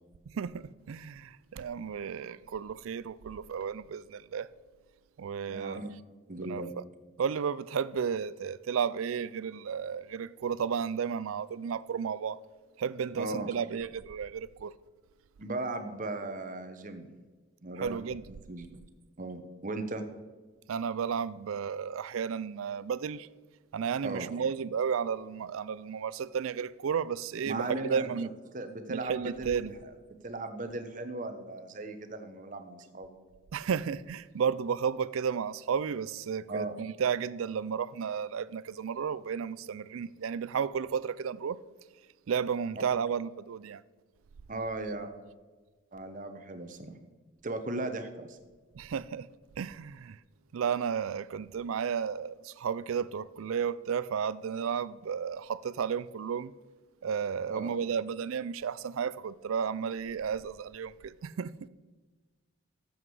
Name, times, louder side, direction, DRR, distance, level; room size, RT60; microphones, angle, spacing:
voice 1, 0.3-4.5 5.2-5.9 6.4-6.8 7.2-12.4 12.8-14.7 17.8-18.2 20.7-23.3 23.7-28.3 28.9-29.7 33.5-41.6 42.3-43.8 48.7-49.3 49.6-50.2 50.5-56.5 57.0-61.5, right 7 dB, 85° right, 0.4 m, -33 dB
voice 2, 5.5-5.9 6.3-6.7 13.2-13.5 15.4-17.1 17.6-18.0 18.5-18.8 19.2-20.0 24.0-24.3 27.4-29.9 30.2-33.2 36.5-36.8 44.5-45.1 45.9-47.0 47.4-48.4 57.5-57.7, right 2 dB, 40° right, 1.0 m, -37 dB
12.5 x 8.0 x 4.8 m
head